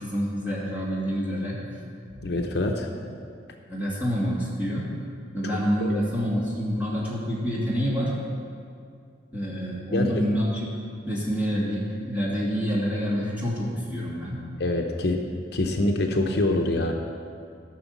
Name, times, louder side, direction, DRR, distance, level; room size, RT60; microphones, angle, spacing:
voice 1, 0.0-1.6 2.1-2.4 2.9-3.0 3.7-4.9 5.3-8.1 9.3-10.6 11.1-14.4, equal, 10° right, -6 dB, 2.4 m, -27 dB
voice 2, 2.2-2.9 5.8-6.0 9.9-10.2 14.6-15.2 15.5-16.9, left 2 dB, 55° left, 3 dB, 0.8 m, -25 dB
13.5 x 6.1 x 7.2 m, 2.4 s
head